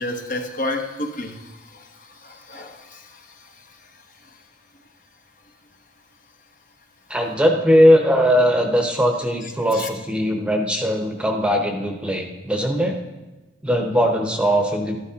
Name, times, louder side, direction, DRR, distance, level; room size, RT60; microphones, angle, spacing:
voice 1, 0.0-3.8 4.2-4.4 9.7-9.9, left 1 dB, 45° left, 4 dB, 1.0 m, -32 dB
voice 2, 7.1-13.0 13.6-15.0, equal, 5° right, 2 dB, 0.9 m, -19 dB
13.0 x 12.0 x 2.9 m, 1.1 s
head